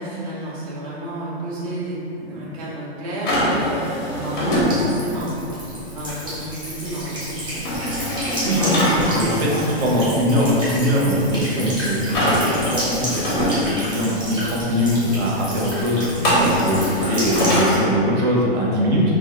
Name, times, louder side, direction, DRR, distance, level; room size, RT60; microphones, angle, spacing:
voice 1, 0.0-3.4 4.1-5.5 5.9-7.9, right 1 dB, 35° right, -7 dB, 0.4 m, -31 dB
sound 1, 3.2-4.7 7.7-9.0 12.1-13.5 16.2-17.7, equal, 20° left, 0.5 m, -22 dB
Buzz / Water tap faucet / Trickle dribble, 4.5-17.8, equal, 15° right, 0.7 m, -30 dB
voice 2, 8.4-19.0, equal, 75° right, -4 dB, 1.0 m, -21 dB
3.0 x 2.3 x 2.8 m, 2.8 s
hypercardioid pair, 165°, 33 cm